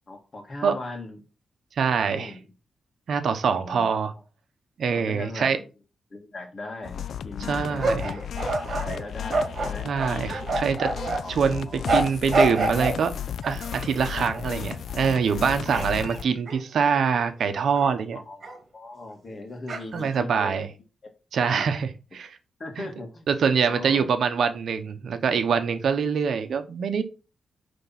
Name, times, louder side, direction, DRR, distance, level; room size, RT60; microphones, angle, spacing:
voice 1, 0.1-1.2 2.1-2.5 3.4-3.9 4.1-4.2 4.9-5.5 6.1-9.9 10.6-10.9 11.2-11.9 14.1-14.5 15.6-15.8 18.1-18.5 18.7-20.7 21.4-21.7 22.6-23.3 23.6-24.0, left 2 dB, 35° left, 4 dB, 1.9 m, -39 dB
voice 2, 1.7-2.3 3.1-4.1 4.8-5.6 7.5-8.0 9.8-10.9 11.3-13.1 13.4-18.2 19.9-20.7 21.3-22.4 22.8-22.9 23.3-27.0, right 6 dB, 65° right, 8 dB, 0.9 m, -24 dB
sound 1, 6.8-16.2, left 8 dB, 65° left, 0.4 m, -34 dB
sound 2, 7.8-11.2 11.9-13.0 13.4-14.2 14.9-15.4 15.7-17.3 17.8-17.9 18.4-18.6 19.7-20.1, right 2 dB, 45° right, 2.4 m, -28 dB
9.6 x 3.6 x 5.9 m, 0.32 s
wide cardioid pair, 145°, 0 cm